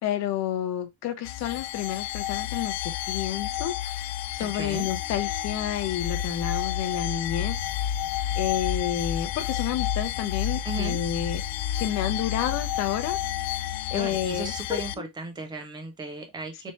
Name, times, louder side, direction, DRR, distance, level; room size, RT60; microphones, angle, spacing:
voice 1, 0.0-7.9 8.4-11.4 11.8-13.2 13.9-15.1, left 10 dB, 35° left, 0.7 m, -30 dB
sound 1, 1.3-15.0, left 11 dB, 90° left, 0.6 m, -30 dB
voice 2, 4.4-4.9 10.7-11.0 13.9-16.7, right 3 dB, 10° right, 0.3 m, -36 dB
4.3 x 3.1 x 3.0 m
cardioid pair, 180°, 45 cm